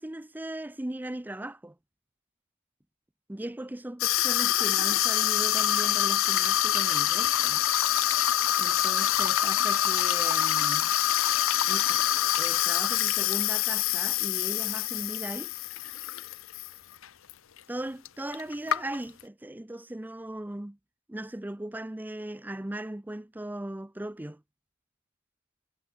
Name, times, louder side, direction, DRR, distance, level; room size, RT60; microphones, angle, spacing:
voice 1, 0.0-1.8 3.3-7.6 8.6-11.0 11.7-15.5 17.7-20.8 21.1-24.4, right 1 dB, 10° right, 0.5 m, -38 dB
Water tap faucet / Sink (filling or washing), 4.0-16.7 17.0-17.3 18.0-18.1 18.3-19.2, left 12 dB, 75° left, 0.8 m, -26 dB
head